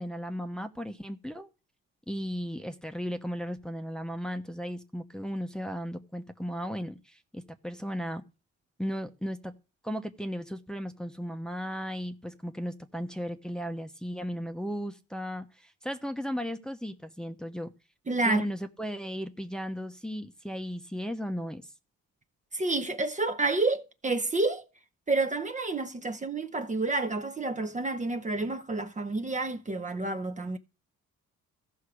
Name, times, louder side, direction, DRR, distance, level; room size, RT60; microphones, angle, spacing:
voice 1, 0.0-1.5 2.1-8.2 8.8-9.5 9.8-15.5 15.8-17.7 18.2-21.6, equal, ahead, 1.0 m, -35 dB
voice 2, 18.1-18.4 22.5-24.6 25.1-30.6, right 3 dB, 25° right, 0.9 m, -29 dB
14.5 x 5.6 x 4.9 m
cardioid pair, 90°, 30 cm